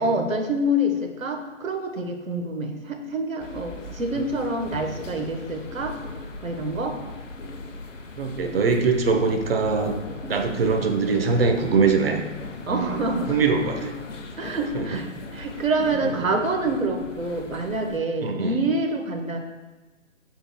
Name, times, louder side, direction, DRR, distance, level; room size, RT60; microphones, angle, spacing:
voice 1, 0.0-5.9 6.4-6.9 12.7-13.4 13.8-13.9 14.4-15.1 15.3-19.4, right 1 dB, 85° right, 3 dB, 1.2 m, -26 dB
sound 1, 3.4-18.0, left 2 dB, 70° left, 1.0 m, -38 dB
voice 2, 8.2-10.0 10.3-12.2 12.7-13.9 14.7-15.0 16.0-16.2 18.2-18.6, right 4 dB, 45° right, 4 dB, 0.9 m, -23 dB
11.5 x 4.0 x 2.2 m, 1.3 s
figure-of-eight pair, 145°, 39 cm